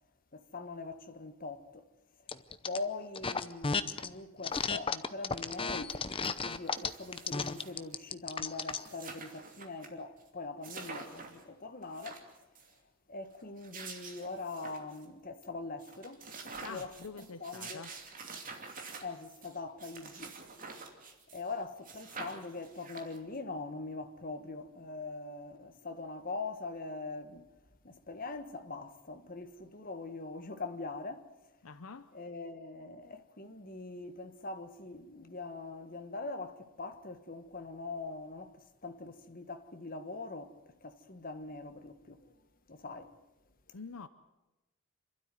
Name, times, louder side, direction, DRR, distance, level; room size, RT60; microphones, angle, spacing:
voice 1, 0.3-1.8 2.6-6.0 6.4-12.2 13.1-16.9 17.2-17.8 19.0-20.3 21.3-27.4 27.8-31.3 32.1-40.6 40.8-42.3 42.7-43.1, left 3 dB, 40° left, 1.5 m, -42 dB
sound 1, 2.3-2.8 3.1-4.1 4.4-8.9, left 5 dB, 25° left, 0.7 m, -33 dB
sound 2, 5.9-6.0 6.2-7.9 8.4-8.5 8.6-9.9 10.2-10.3 10.6-11.4 11.8-12.7 13.4-15.0 15.4-15.5 15.8-21.5 21.8-23.4, right 4 dB, 40° right, 2.7 m, -47 dB
voice 2, 16.6-17.9 31.6-32.1 43.7-44.1, left 4 dB, 70° left, 0.8 m, -46 dB
28.0 x 12.5 x 9.5 m
head